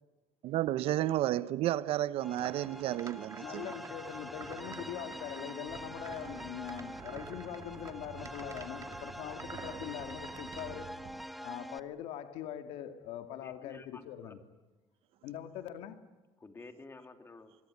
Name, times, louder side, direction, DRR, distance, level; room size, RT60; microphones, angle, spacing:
voice 1, 0.4-3.7, right 14 dB, 75° right, 0.9 m, -32 dB
sound 1, 2.2-11.8, equal, ahead, 1.1 m, -45 dB
sound 2, 2.4-10.8, right 5 dB, 35° right, 2.0 m, -50 dB
voice 2, 3.4-10.9 11.4-14.4 15.2-16.0, left 10 dB, 85° left, 2.3 m, -42 dB
sound 3, 5.7-11.2, right 8 dB, 55° right, 2.9 m, -52 dB
voice 3, 13.4-14.3 16.4-17.6, left 3 dB, 25° left, 3.1 m, -51 dB
25.0 x 22.0 x 9.6 m
cardioid pair, 100°, 10 cm